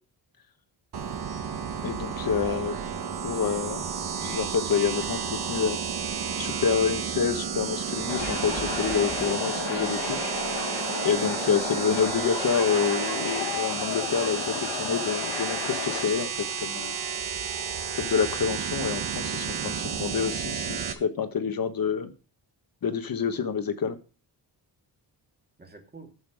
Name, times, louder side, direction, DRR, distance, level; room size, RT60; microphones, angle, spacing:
sound 1, 0.9-20.9, right 7 dB, 60° right, 1.3 m, -31 dB
voice 1, 1.8-2.7 3.2-3.9 4.2-5.8 6.4-10.2 11.0-16.3 16.6-17.0 17.9-22.1 22.8-23.9, left 6 dB, 55° left, 1.4 m, -27 dB
voice 2, 2.4-2.8 10.6-11.5 25.6-26.1, right 2 dB, 20° right, 2.2 m, -45 dB
sound 2, 8.1-16.1, left 8 dB, 80° left, 1.2 m, -34 dB
12.5 x 7.0 x 5.0 m
wide cardioid pair, 145°, 43 cm